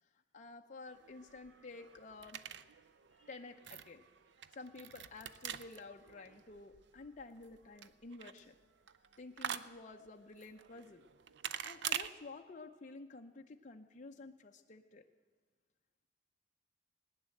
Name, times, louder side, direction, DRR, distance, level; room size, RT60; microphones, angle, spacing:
voice 1, 0.0-2.4 3.2-4.0 4.5-8.5 9.2-11.0 11.6-15.0, left 3 dB, 40° left, 3 dB, 0.6 m, -51 dB
sound 1, 0.9-12.1, right 9 dB, 65° right, 0.5 m, -46 dB
19.0 x 9.8 x 7.8 m, 1.4 s
head